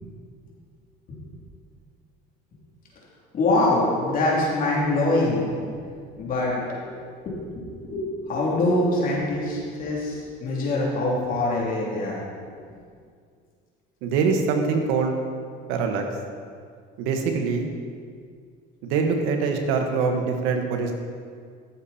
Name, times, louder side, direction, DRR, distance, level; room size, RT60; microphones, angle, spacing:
voice 1, 3.3-5.7 6.2-6.9 7.2-12.2, left 2 dB, 45° left, -4 dB, 3.2 m, -24 dB
voice 2, 14.0-15.1 15.7-16.0 17.0-17.7 18.8-20.9, right 5 dB, 85° right, 4 dB, 1.4 m, -24 dB
14.0 x 7.3 x 4.3 m, 2.1 s
cardioid pair, 125°, 21 cm